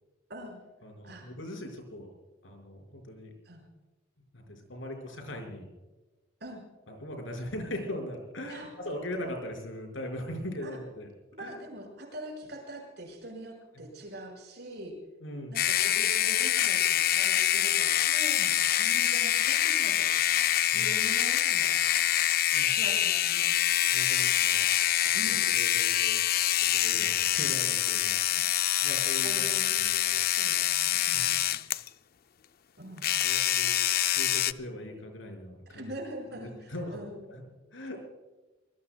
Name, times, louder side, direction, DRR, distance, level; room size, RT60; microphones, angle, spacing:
voice 1, 0.3-0.6 1.0-1.3 3.4-3.7 6.4-6.6 8.5-8.7 10.6-10.8 11.3-14.9 15.5-20.1 20.6-21.8 22.7-23.5 25.1-25.5 26.9-27.2 29.2-29.8 30.2-31.6 32.8-33.3 35.7-37.2, right 1 dB, 55° right, 1 dB, 5.7 m, -43 dB
voice 2, 0.8-2.1 2.4-3.3 4.3-5.7 6.9-11.1 11.4-11.5 13.8-13.9 15.2-15.6 20.7-20.9 22.5-22.7 23.9-24.7 25.3-26.3 26.7-28.5 28.8-30.2 31.1-31.4 33.2-33.8 34.1-35.9 36.3-37.0 37.3-37.4 37.7-38.0, left 1 dB, 80° left, 3 dB, 5.4 m, -40 dB
sound 1, 15.5-31.9 33.0-34.5, left 12 dB, 50° left, 0.4 m, -26 dB
25.5 x 20.5 x 2.3 m, 1.2 s
head